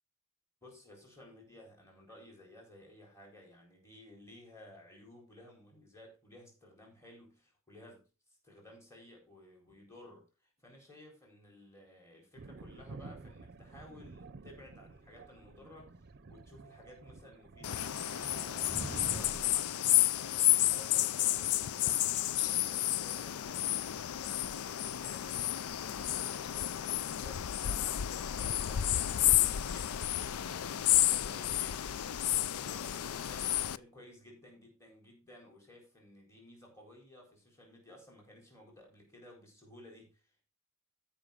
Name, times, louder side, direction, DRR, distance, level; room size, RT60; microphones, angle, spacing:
voice 1, 0.6-8.1 8.4-23.7 24.2-30.1 30.4-31.9 32.5-40.5, left 1 dB, 15° left, 0 dB, 4.4 m, -56 dB
Thunder, 12.3-19.6, right 3 dB, 50° right, 0.7 m, -49 dB
sound 1, 17.6-33.8, left 13 dB, 85° left, 0.5 m, -31 dB
sound 2, 17.7-19.7, right 2 dB, 15° right, 0.6 m, -50 dB
13.0 x 5.8 x 5.1 m, 0.33 s
head